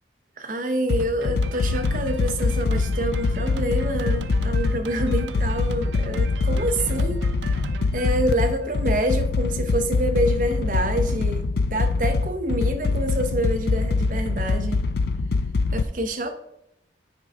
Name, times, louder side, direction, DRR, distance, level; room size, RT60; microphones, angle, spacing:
voice 1, 0.4-7.3 7.9-14.8 15.7-16.4, right 1 dB, 45° right, 6 dB, 0.7 m, -27 dB
sound 1, 0.9-15.8, left 3 dB, 55° left, 0.4 m, -24 dB
Drum kit, 1.0-8.8, right 4 dB, 80° right, 0.5 m, -38 dB
9.5 x 4.5 x 3.6 m, 0.82 s
head